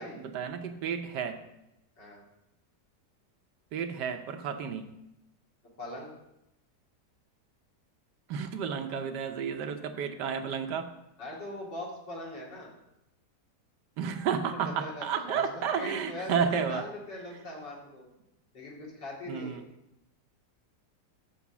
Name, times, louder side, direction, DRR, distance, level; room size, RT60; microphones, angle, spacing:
voice 1, 0.0-1.4 3.7-4.9 8.3-10.9 14.0-16.8 19.3-19.6, right 7 dB, 75° right, 7 dB, 1.3 m, -32 dB
voice 2, 5.8-6.1 11.2-12.7 14.6-18.1 18.5-19.6, left 1 dB, 85° left, -4 dB, 3.0 m, -41 dB
7.1 x 5.4 x 7.1 m, 0.90 s
omnidirectional pair, 1.9 m